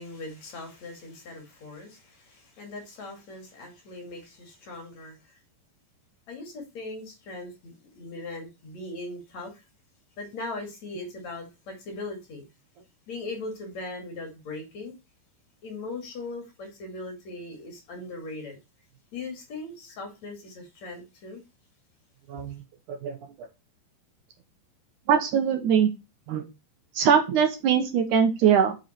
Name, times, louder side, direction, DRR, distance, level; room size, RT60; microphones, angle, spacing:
voice 1, 0.0-5.4 6.3-9.6 10.2-12.5 13.1-14.9 15.6-18.6 19.1-21.4, left 2 dB, 45° left, 3.2 m, -39 dB
voice 2, 22.9-23.5 25.1-25.9 26.3-26.4 27.0-28.8, right 7 dB, 70° right, 1.9 m, -22 dB
8.1 x 6.2 x 4.4 m
omnidirectional pair, 4.8 m